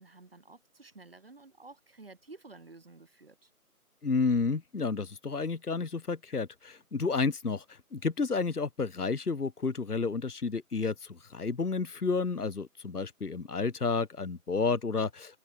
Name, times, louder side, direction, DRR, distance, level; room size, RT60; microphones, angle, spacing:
voice 1, 0.0-3.5, right 3 dB, 40° right, 4.8 m, -52 dB
voice 2, 4.0-15.4, left 4 dB, 75° left, 1.1 m, -31 dB
open air
figure-of-eight pair, 165°, 46 cm